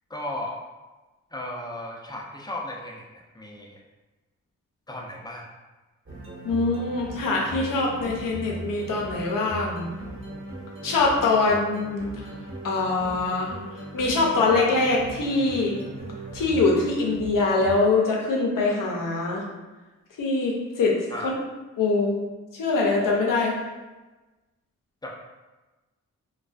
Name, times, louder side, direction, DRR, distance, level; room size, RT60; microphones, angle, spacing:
voice 1, 0.1-0.6 1.3-3.8 4.9-5.5 21.1-21.3 25.0-25.1, left 1 dB, 15° left, -2 dB, 0.5 m, -35 dB
sound 1, 6.1-18.0, right 2 dB, 40° right, 1.0 m, -38 dB
voice 2, 6.4-9.9 10.8-12.3 12.6-13.5 13.9-15.8 16.3-19.4 20.2-21.0 21.2-21.3 21.8-22.2 22.5-23.5, left 3 dB, 80° left, -2 dB, 0.6 m, -23 dB
2.2 x 2.2 x 2.5 m, 1.2 s
cardioid pair, 50°, 32 cm